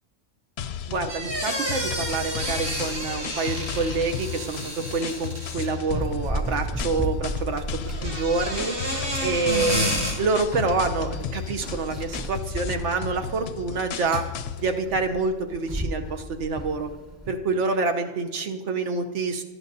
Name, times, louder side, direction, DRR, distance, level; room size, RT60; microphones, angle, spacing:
sound 1, 0.6-14.8, left 7 dB, 70° left, 0.8 m, -34 dB
voice 1, 0.9-8.7 9.2-14.2 14.6-16.9 17.3-19.4, right 3 dB, 80° right, 5 dB, 1.2 m, -27 dB
sound 2, 1.1-5.9 7.9-10.1, equal, 45° right, 5.1 m, -30 dB
Run, 5.9-17.3, equal, 25° right, 1.6 m, -34 dB
17.5 x 13.0 x 2.7 m, 1.2 s
omnidirectional pair, 1.2 m